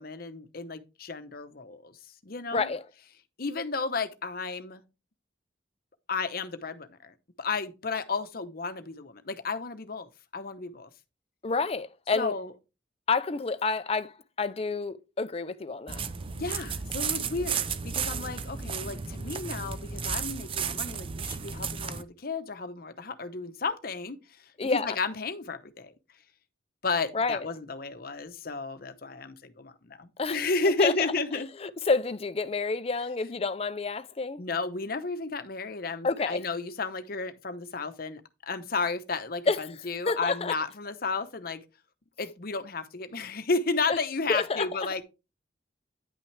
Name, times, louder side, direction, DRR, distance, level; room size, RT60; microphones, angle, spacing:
voice 1, 0.0-2.0 2.2-2.7 3.4-4.8 6.1-10.9 12.2-12.5 16.4-24.2 24.7-25.9 26.8-31.5 34.4-41.6 42.2-45.0, left 4 dB, 55° left, 0.9 m, -33 dB
voice 2, 2.5-2.8 11.4-12.3 13.1-16.1 24.6-25.0 27.1-27.4 30.2-30.4 30.8-30.9 31.6-34.4 36.0-36.4 39.5-39.6 40.1-40.5 43.9-44.0 44.3-44.7, left 4 dB, 35° left, 0.6 m, -29 dB
sound 1, 15.9-22.0, right 6 dB, 30° right, 0.5 m, -33 dB
9.8 x 5.9 x 3.3 m
head